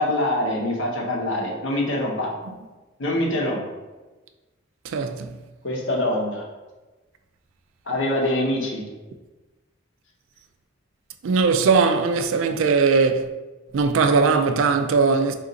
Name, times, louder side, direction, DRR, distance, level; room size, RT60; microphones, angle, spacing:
voice 1, 0.0-2.3 3.0-3.6 5.6-6.5 7.9-8.8, left 1 dB, 65° left, 0.8 m, -24 dB
voice 2, 4.8-5.3 11.2-13.3 13.7-15.3, right 4 dB, 70° right, 0.3 m, -19 dB
3.8 x 2.5 x 3.9 m
head